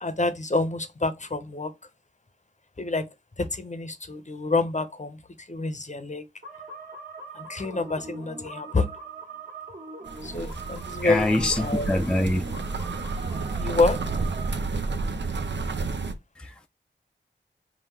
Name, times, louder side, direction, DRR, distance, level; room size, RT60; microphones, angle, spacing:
voice 1, 0.0-1.7 2.8-3.1 3.4-6.3 7.3-8.9 10.2-11.9 13.6-14.0, left 3 dB, 40° left, 0.8 m, -27 dB
sound 1, 6.4-14.6, right 3 dB, 45° right, 1.6 m, -41 dB
sound 2, 10.1-16.1, right 3 dB, 65° right, 0.7 m, -31 dB
voice 2, 11.0-12.4 16.4-16.7, left 1 dB, 5° left, 0.5 m, -24 dB
3.7 x 2.4 x 4.4 m
cardioid pair, 40°, 20 cm